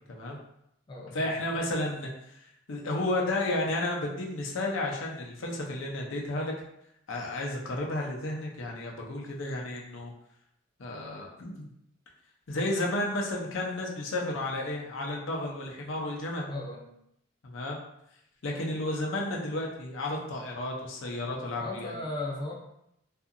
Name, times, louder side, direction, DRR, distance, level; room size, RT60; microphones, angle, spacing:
voice 1, 0.1-0.4 1.1-6.5 7.1-10.1 10.8-11.7 12.5-16.5 17.4-17.8 18.4-21.9, left 1 dB, 85° left, -1 dB, 0.6 m, -32 dB
voice 2, 0.9-1.4 16.5-16.9 21.6-22.5, left 2 dB, 25° left, -2 dB, 0.4 m, -36 dB
2.7 x 2.5 x 2.5 m, 0.79 s
head